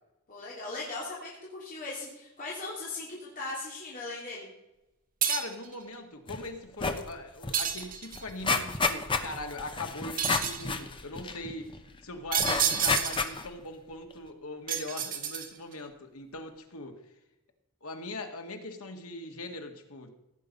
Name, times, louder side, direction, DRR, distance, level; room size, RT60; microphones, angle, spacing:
voice 1, 0.3-4.5, left 3 dB, 40° left, -5 dB, 3.0 m, -38 dB
sound 1, 5.2-5.7 7.5-8.3 10.2-10.7 12.3-13.4 14.7-15.7, right 8 dB, 40° right, 1.2 m, -30 dB
voice 2, 5.3-17.0 17.8-20.2, left 2 dB, 80° left, 4 dB, 1.9 m, -41 dB
sound 2, 6.3-6.4 6.7-7.1 7.4-7.5 7.8-11.8 12.4-13.6 14.1-14.2, left 4 dB, 25° left, 0.9 m, -30 dB
16.5 x 8.7 x 5.3 m, 0.98 s
head